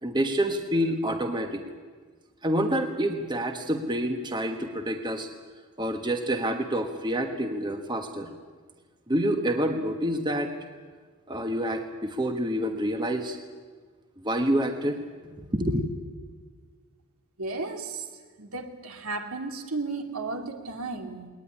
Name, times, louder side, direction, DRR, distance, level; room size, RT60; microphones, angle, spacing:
voice 1, 0.0-1.6 2.4-5.3 5.8-8.3 9.1-10.5 11.3-13.4 14.2-15.0 15.2-15.8, equal, 20° right, 5 dB, 1.4 m, -27 dB
voice 2, 17.4-18.1 18.4-21.3, right 3 dB, 75° right, 4 dB, 2.7 m, -34 dB
20.5 x 19.5 x 10.0 m, 1.5 s
head